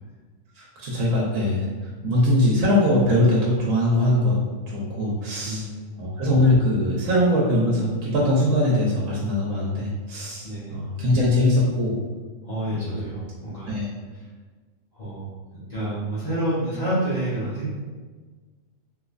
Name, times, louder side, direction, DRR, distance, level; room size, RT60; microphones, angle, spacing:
voice 1, 0.6-1.7 2.0-4.4 4.7-5.6 6.0-11.9 12.7-13.0 13.7-13.9, left 1 dB, 85° right, -5 dB, 1.1 m, -21 dB
voice 2, 5.4-6.0 10.4-10.8 12.4-13.8 14.1-14.2 14.9-15.3 15.7-17.7, right 1 dB, 35° left, -12 dB, 1.1 m, -29 dB
3.2 x 3.0 x 2.5 m, 1.4 s
omnidirectional pair, 1.3 m